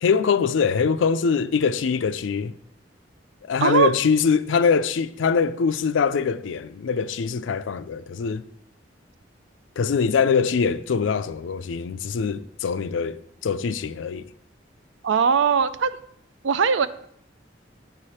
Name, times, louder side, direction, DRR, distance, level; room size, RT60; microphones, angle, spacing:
voice 1, 0.0-2.5 3.5-8.4 9.8-14.3, left 6 dB, 80° left, 0.4 m, -23 dB
voice 2, 15.0-16.0 16.4-16.9, right 6 dB, 75° right, 0.4 m, -20 dB
8.8 x 4.9 x 4.2 m
head